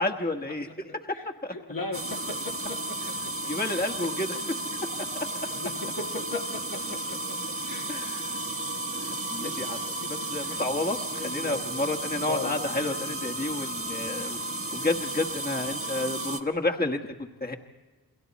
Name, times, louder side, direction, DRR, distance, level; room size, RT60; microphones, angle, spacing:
voice 1, 0.0-1.5 3.5-4.4 5.1-5.3 7.9-8.3 9.0-9.8 10.1-14.4 14.7-17.5, left 2 dB, 25° left, 3 dB, 1.3 m, -30 dB
voice 2, 1.5-3.3 3.6-4.1 5.5-7.4 7.6-8.0 9.4-9.6 10.0-10.6 11.1-11.9 12.2-12.7, left 3 dB, 65° left, 2 dB, 1.6 m, -38 dB
sound 1, 1.9-16.4, right 1 dB, 35° right, 1.3 m, -33 dB
29.5 x 22.0 x 4.2 m, 1.2 s
wide cardioid pair, 45°, 37 cm